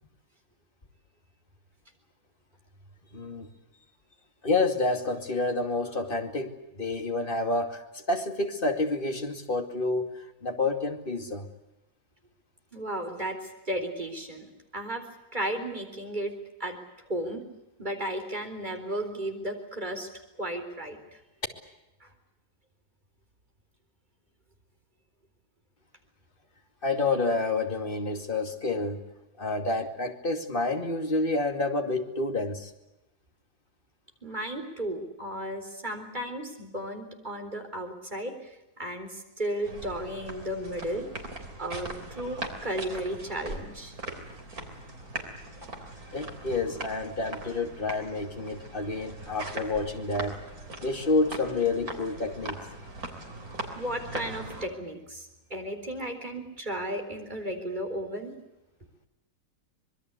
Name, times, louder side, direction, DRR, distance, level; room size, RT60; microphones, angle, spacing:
voice 1, 3.1-3.5 4.4-10.1 10.4-11.5 26.8-29.0 29.4-32.7 46.1-50.4 50.8-52.6, left 3 dB, 35° left, 5 dB, 2.7 m, -29 dB
voice 2, 12.7-15.0 15.3-16.3 16.6-16.8 17.1-17.4 17.8-20.1 20.4-21.2 22.0-22.1 34.2-38.5 38.8-41.1 41.6-43.9 53.8-58.3, right 1 dB, 25° right, 4 dB, 4.2 m, -34 dB
sound 1, 39.6-54.7, right 2 dB, 65° right, 4.1 m, -40 dB
25.5 x 21.5 x 8.3 m, 0.96 s
omnidirectional pair, 1.7 m